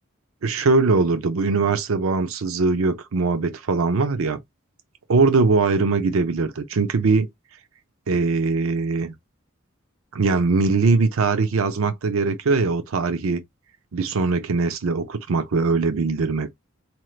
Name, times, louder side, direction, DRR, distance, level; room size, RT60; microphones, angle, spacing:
voice 1, 0.4-4.4 5.1-7.3 8.1-9.1 10.1-13.4 13.9-16.5, right 4 dB, 85° right, 0.6 m, -21 dB
4.4 x 2.3 x 3.1 m
head